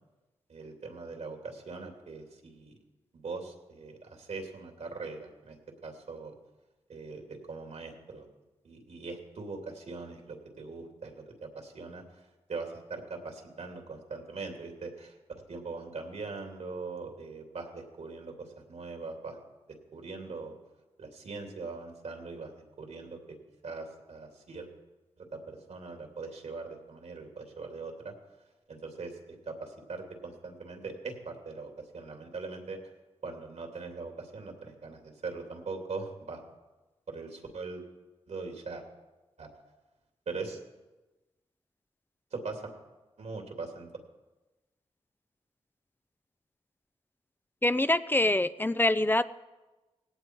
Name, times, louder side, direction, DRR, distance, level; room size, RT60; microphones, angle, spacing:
voice 1, 0.5-2.8 3.1-5.6 5.8-6.4 6.9-8.3 8.6-15.1 15.5-19.4 19.7-20.6 21.0-23.4 23.6-24.7 25.2-28.2 28.7-32.8 33.2-36.4 37.1-37.8 38.3-38.8 39.4-39.5 40.3-40.6 42.3-42.7 43.2-43.9, right 4 dB, 75° right, 3 dB, 2.8 m, -41 dB
voice 2, 47.6-49.2, left 1 dB, 15° left, 14 dB, 0.6 m, -25 dB
18.5 x 17.0 x 4.6 m, 1.1 s
cardioid pair, 55°, 12 cm